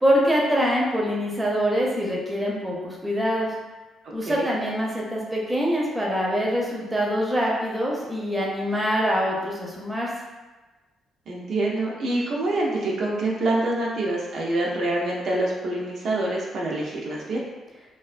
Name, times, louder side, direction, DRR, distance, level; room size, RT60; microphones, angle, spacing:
voice 1, 0.0-3.5 4.1-10.1, equal, 10° right, -3 dB, 0.6 m, -24 dB
voice 2, 11.3-17.4, right 2 dB, 60° right, -3 dB, 0.5 m, -26 dB
2.4 x 2.2 x 2.4 m, 1.2 s
cardioid pair, 90°, 0 cm